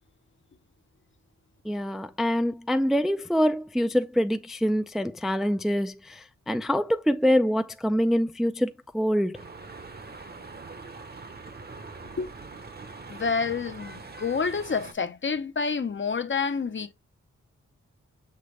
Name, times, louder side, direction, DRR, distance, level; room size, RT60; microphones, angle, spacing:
voice 1, 1.6-9.4, equal, ahead, 0.4 m, -25 dB
sound 1, 9.3-14.9, right 3 dB, 30° right, 0.9 m, -43 dB
voice 2, 13.1-16.9, left 5 dB, 40° left, 0.7 m, -28 dB
6.6 x 2.5 x 3.2 m
cardioid pair, 60°, 30 cm